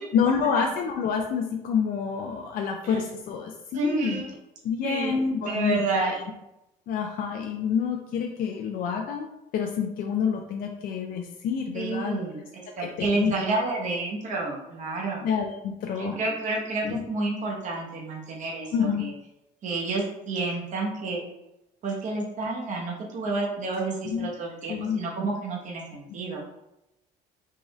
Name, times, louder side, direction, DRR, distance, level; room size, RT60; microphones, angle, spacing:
voice 1, 0.1-4.2 4.6-6.2 6.9-9.3 9.5-12.1 13.0-13.4 15.2-16.2 16.8-17.0 18.7-19.0 24.0-24.3 24.7-25.0, left 6 dB, 60° left, 2 dB, 0.4 m, -28 dB
voice 2, 3.7-4.4 4.8-6.2 11.7-15.3 15.9-19.1 19.6-21.2 21.8-26.4, right 3 dB, 45° right, -2 dB, 0.9 m, -30 dB
3.6 x 2.5 x 3.1 m, 0.91 s
cardioid pair, 110°, 17 cm